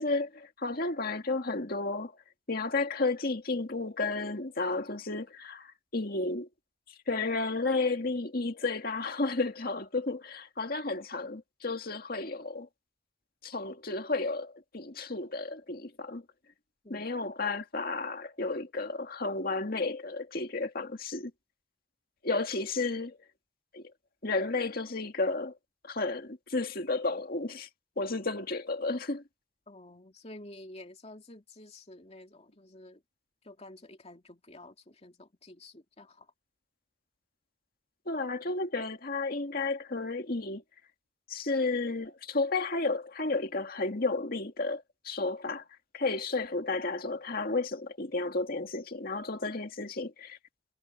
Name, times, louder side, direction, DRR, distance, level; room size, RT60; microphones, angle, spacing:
voice 1, 0.0-2.1 2.5-6.5 7.1-12.7 13.4-16.2 16.9-21.3 22.2-23.2 23.7-23.9 24.2-25.5 25.8-27.7 28.0-29.2 38.1-40.6 41.3-45.6 45.9-50.4, left 3 dB, 50° left, 2.1 m, -32 dB
voice 2, 29.7-33.0 33.4-36.3, left 1 dB, 35° left, 2.4 m, -50 dB
head